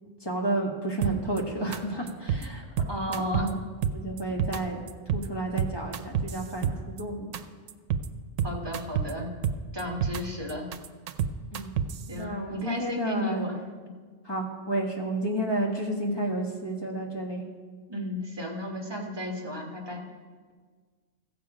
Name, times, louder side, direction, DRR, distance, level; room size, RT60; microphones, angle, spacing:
voice 1, 0.2-2.6 3.1-3.6 3.9-4.8 5.1-7.3 11.5-11.7 12.2-13.4 14.2-17.4, right 1 dB, 20° left, 0 dB, 1.4 m, -31 dB
sound 1, 1.0-1.4 1.7-1.8 2.1-2.5 2.8-3.5 3.8-4.6 4.9-5.3 5.6-7.0 7.3-7.4 7.7-8.1 8.4-9.1 9.4-10.2 10.5-12.0, right 8 dB, 90° right, 1.0 m, -28 dB
voice 2, 2.9-3.5 8.4-9.3 9.7-10.7 12.1-13.5 17.9-20.1, left 1 dB, 20° right, -1 dB, 1.5 m, -33 dB
15.0 x 7.0 x 4.9 m, 1.5 s
omnidirectional pair, 1.3 m